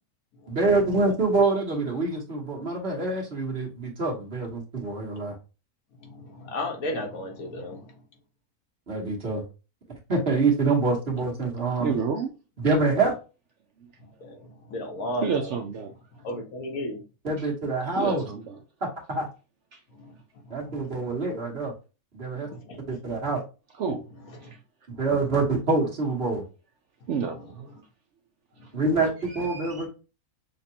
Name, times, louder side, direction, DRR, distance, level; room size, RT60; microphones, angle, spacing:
voice 1, 0.5-5.3 8.9-9.4 10.1-11.9 12.6-13.1 17.2-18.2 18.8-19.3 20.5-21.7 22.1-22.5 22.9-23.4 24.9-26.4 28.7-29.9, right 3 dB, 45° right, 1.6 m, -26 dB
voice 2, 6.0-8.0 14.0-15.6 16.1-17.0 19.9-20.7 22.3-22.9 24.4-24.5 27.4-27.5 28.6-28.8, left 1 dB, 70° left, 1.5 m, -35 dB
voice 3, 11.8-12.3 15.2-15.9 18.0-18.5 19.7-19.8 23.8-24.0 24.4-24.6 27.1-27.7 29.3-29.9, right 6 dB, 65° right, 0.8 m, -30 dB
6.5 x 2.4 x 2.8 m
omnidirectional pair, 1.6 m